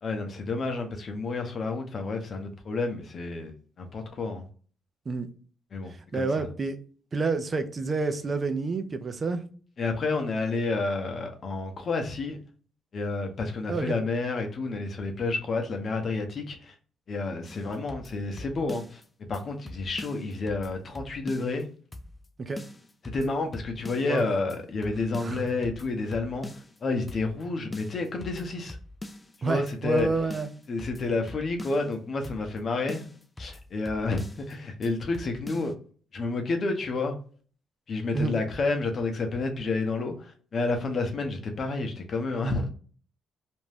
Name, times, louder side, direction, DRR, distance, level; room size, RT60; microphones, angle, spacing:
voice 1, 0.0-4.4 5.7-6.5 9.8-12.4 12.9-16.7 17.1-19.0 19.3-21.7 23.0-26.5 26.8-28.8 29.4-30.1 30.7-33.1 33.4-35.7 36.1-37.2 37.9-42.7, left 3 dB, 50° left, 0.7 m, -30 dB
voice 2, 6.1-6.8 7.1-9.4 13.7-14.0 22.4-22.6 24.1-24.2 25.2-25.5 29.4-30.5 38.1-38.3, right 4 dB, 35° right, 0.5 m, -28 dB
sound 1, 17.4-19.0 19.3-19.4 19.7-21.6 21.9-22.3 22.6-24.2 24.5-24.6 24.8-26.8 27.1-27.4 27.7-29.4 29.7-29.8 30.0-31.9 32.2-32.6 32.9-34.5 34.8-34.9 35.1-35.7, left 1 dB, 20° left, 0.4 m, -43 dB
2.6 x 2.2 x 3.2 m
cardioid pair, 90°, 0 cm